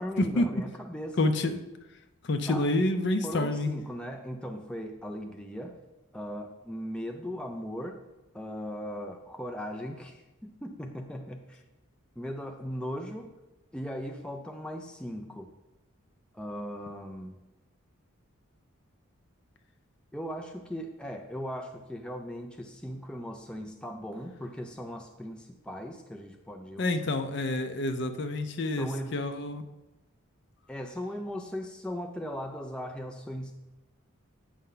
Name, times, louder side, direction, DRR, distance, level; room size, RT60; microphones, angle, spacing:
voice 1, 0.0-1.2 2.5-2.7 3.2-5.8 6.1-8.0 8.3-11.6 12.2-13.3 13.7-15.5 16.3-17.3 20.1-27.0 28.8-29.2 30.7-33.5, equal, 5° left, 3 dB, 0.4 m, -38 dB
voice 2, 1.2-1.6 2.2-3.7 26.8-28.9 29.1-29.6, left 2 dB, 55° left, 8 dB, 0.5 m, -28 dB
8.3 x 5.4 x 3.9 m, 1.0 s
head